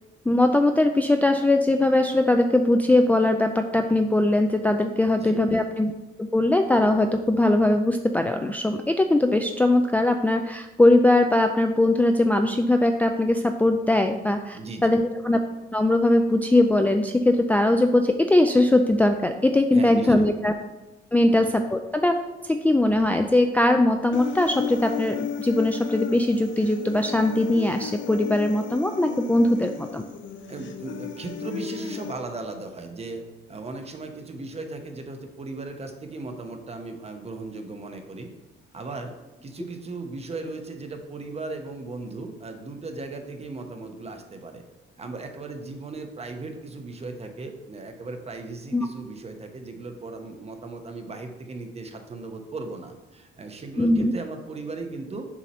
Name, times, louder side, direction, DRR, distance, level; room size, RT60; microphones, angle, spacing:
voice 1, 0.3-5.9 6.2-15.4 15.7-20.5 21.1-22.1 22.4-30.1 48.7-48.9 53.8-54.1, left 1 dB, 10° left, 4 dB, 0.3 m, -21 dB
voice 2, 14.5-14.9 19.7-20.2 21.3-21.5 30.5-38.3 38.7-39.1 39.4-44.6 45.0-55.3, right 3 dB, 30° right, 5 dB, 0.9 m, -37 dB
Human voice, 24.1-32.1, left 8 dB, 70° left, 0.6 m, -34 dB
7.2 x 2.8 x 5.4 m, 1.1 s
cardioid pair, 90°, 20 cm